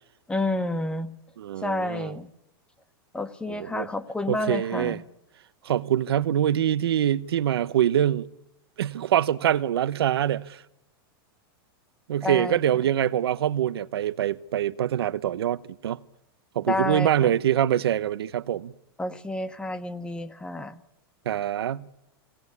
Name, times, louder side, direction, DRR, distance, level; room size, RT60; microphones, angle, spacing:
voice 1, 0.3-1.1 1.6-2.3 3.1-5.0 12.2-12.6 16.7-17.3 19.0-20.8, left 2 dB, 10° left, 1.4 m, -29 dB
voice 2, 1.4-2.2 3.5-3.9 4.3-5.0 5.6-8.3 8.8-10.6 12.1-16.0 16.5-18.7 21.2-21.9, right 10 dB, 90° right, 0.9 m, -24 dB
23.0 x 18.0 x 9.7 m
supercardioid pair, 135°, 13 cm